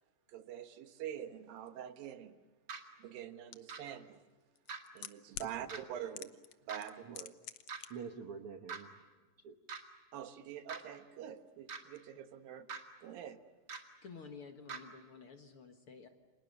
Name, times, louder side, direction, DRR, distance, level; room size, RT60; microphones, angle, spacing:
voice 1, 0.3-2.4 3.0-4.2 4.9-6.4 6.6-7.3 10.1-12.7 13.0-13.4, right 10 dB, 85° right, 8 dB, 3.0 m, -45 dB
sound 1, 2.7-2.8 3.7-3.8 4.7-4.8 5.7-5.8 6.7-6.8 7.7-7.8 8.7-8.8 9.7-9.8 10.7-10.8 11.7-11.8 12.7-12.8 13.7-13.8 14.7-14.8, right 5 dB, 35° right, 2.3 m, -42 dB
sound 2, 3.5-3.6 4.6-5.5 6.2-6.6 6.8-7.9 8.1-8.2, left 11 dB, 75° left, 1.4 m, -45 dB
voice 2, 5.3-5.8 7.0-7.2 7.9-9.1 9.4-9.6, right 6 dB, 60° right, 5 dB, 1.5 m, -47 dB
voice 3, 14.0-16.1, left 5 dB, 50° left, 5 dB, 2.0 m, -51 dB
30.0 x 26.5 x 6.7 m, 1.3 s
omnidirectional pair, 4.0 m